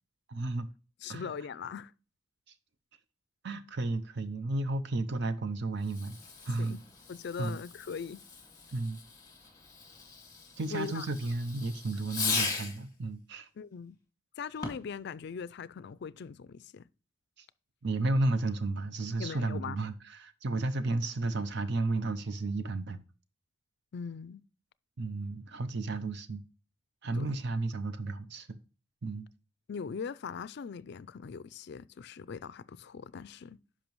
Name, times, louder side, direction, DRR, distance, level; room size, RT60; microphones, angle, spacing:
voice 1, 0.3-0.7 1.1-1.3 3.4-6.2 6.4-6.8 7.4-7.6 8.7-9.0 10.6-13.5 17.4-17.5 17.8-23.0 25.0-26.4 27.0-28.6 29.0-29.3, right 2 dB, 60° right, 0.6 m, -33 dB
voice 2, 1.0-1.9 6.6-6.8 7.1-8.2 10.7-11.1 13.6-14.0 14.4-16.8 19.2-19.8 23.9-24.4 27.1-27.3 29.7-33.6, left 6 dB, 60° left, 0.4 m, -40 dB
Fireworks, 5.8-12.9 14.5-15.0, left 4 dB, 20° left, 2.3 m, -39 dB
10.5 x 5.9 x 3.1 m
head